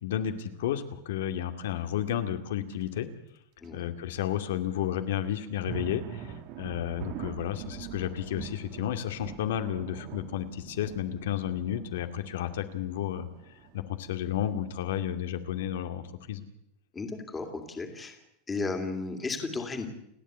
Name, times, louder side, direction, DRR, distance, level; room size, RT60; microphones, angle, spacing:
voice 1, 0.0-3.1 3.7-13.3 13.7-16.4, left 10 dB, 80° left, 8 dB, 2.3 m, -32 dB
sound 1, 2.7-3.0 3.6-3.7 4.1-4.2 5.3-15.7, right 9 dB, 40° right, 1.6 m, -44 dB
voice 2, 3.6-3.9 16.9-18.2 18.5-19.9, left 3 dB, 10° left, 5 dB, 2.5 m, -34 dB
29.5 x 10.0 x 9.3 m, 0.79 s
supercardioid pair, 180°, 0 cm